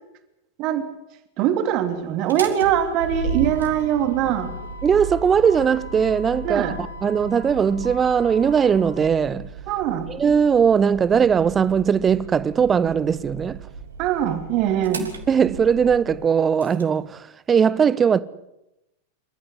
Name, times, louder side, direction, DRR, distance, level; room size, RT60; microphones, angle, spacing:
voice 1, 1.4-4.5 6.4-6.8 9.7-10.1 14.0-15.1, right 10 dB, 40° right, 3.0 m, -22 dB
Motor vehicle (road), 2.1-16.8, right 3 dB, 70° right, 3.0 m, -35 dB
voice 2, 4.8-9.5 10.1-13.6 15.3-18.2, right 7 dB, 20° right, 1.0 m, -19 dB
29.0 x 14.0 x 9.8 m
figure-of-eight pair, 90°, 0 cm